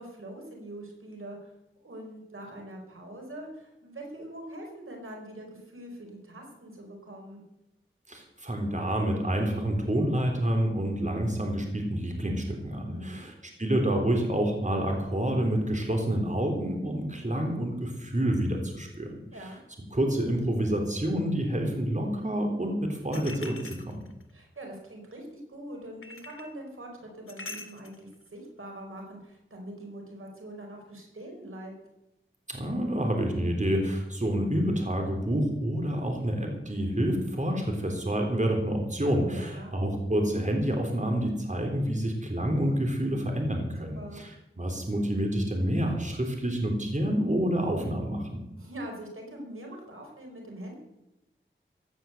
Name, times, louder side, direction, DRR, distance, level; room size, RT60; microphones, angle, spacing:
voice 1, 0.0-1.5 1.8-7.4 12.9-13.3 19.3-19.6 24.3-31.7 39.3-39.8 43.8-44.2 48.6-50.8, right 1 dB, 85° right, 1 dB, 4.5 m, -43 dB
voice 2, 8.1-13.3 13.6-19.2 19.9-24.0 32.5-44.3 44.6-48.4, right 1 dB, 35° right, 2 dB, 3.7 m, -28 dB
sound 1, 23.1-24.3 26.0-26.5 27.3-28.0, left 3 dB, 90° left, 1.9 m, -43 dB
16.0 x 9.3 x 7.8 m, 0.92 s
wide cardioid pair, 50°, 21 cm